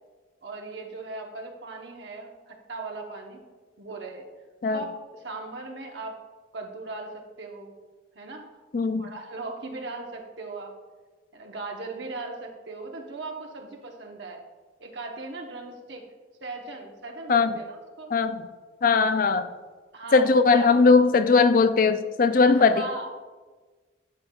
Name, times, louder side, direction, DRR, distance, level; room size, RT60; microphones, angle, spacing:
voice 1, 0.4-3.4 3.8-4.3 4.7-6.1 6.5-7.7 8.1-8.5 8.9-10.7 11.3-14.4 14.8-16.0 16.4-18.1 19.9-20.7 22.5-23.1, right 3 dB, 65° right, 2 dB, 1.0 m, -38 dB
voice 2, 8.7-9.1 17.3-17.6 18.1-18.4 18.8-19.5 20.1-22.9, left 4 dB, 45° left, 11 dB, 0.4 m, -19 dB
11.0 x 6.5 x 2.3 m, 1.3 s
head